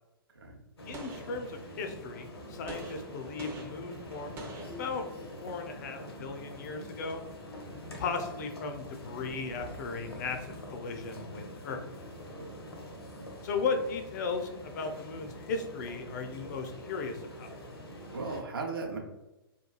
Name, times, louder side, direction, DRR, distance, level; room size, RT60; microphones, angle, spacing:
sound 1, 0.8-18.4, equal, 80° left, 0.7 m, -45 dB
voice 1, 0.9-5.0 5.4-7.3 8.0-11.8 13.4-17.5, left 4 dB, 45° left, 5 dB, 0.4 m, -36 dB
Gunshot gunfire, 0.9-2.0 2.7-5.4, right 2 dB, 20° right, 0.4 m, -46 dB
voice 2, 18.1-19.0, right 3 dB, 65° right, 1 dB, 0.6 m, -37 dB
3.0 x 2.2 x 2.2 m, 1.0 s
figure-of-eight pair, 115°, 13 cm